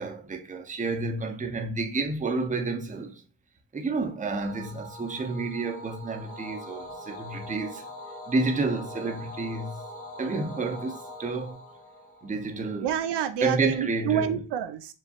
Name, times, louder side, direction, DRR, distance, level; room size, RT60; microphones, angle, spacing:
voice 1, 0.0-3.2 3.7-7.8 8.3-9.8 10.2-11.6 12.2-12.9 13.4-14.4, right 3 dB, 15° right, 0.6 m, -30 dB
sound 1, 4.3-12.9, left 1 dB, 30° left, 1.1 m, -43 dB
voice 2, 12.8-14.9, right 9 dB, 65° right, 0.5 m, -28 dB
4.6 x 3.1 x 2.8 m
cardioid pair, 130°, 45 cm